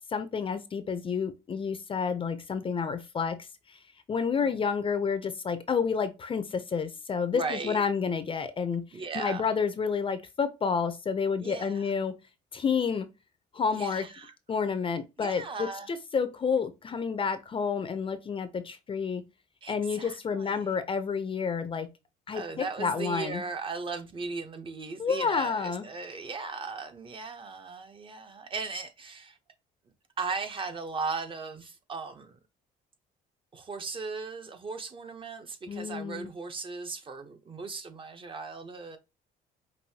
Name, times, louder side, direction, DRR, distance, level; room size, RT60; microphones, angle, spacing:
voice 1, 0.0-3.4 3.7-3.8 4.1-8.9 9.1-12.2 12.5-13.1 13.5-14.1 14.5-19.2 19.7-21.9 22.3-23.4 25.0-25.9 35.7-36.3, left 6 dB, 30° left, 0.6 m, -30 dB
voice 2, 7.3-7.8 8.9-9.6 11.4-11.9 13.7-14.3 15.2-15.9 19.6-20.6 22.3-29.4 30.2-32.4 33.5-39.0, right 4 dB, 30° right, 0.8 m, -37 dB
5.4 x 2.6 x 2.8 m
cardioid pair, 110°, 17 cm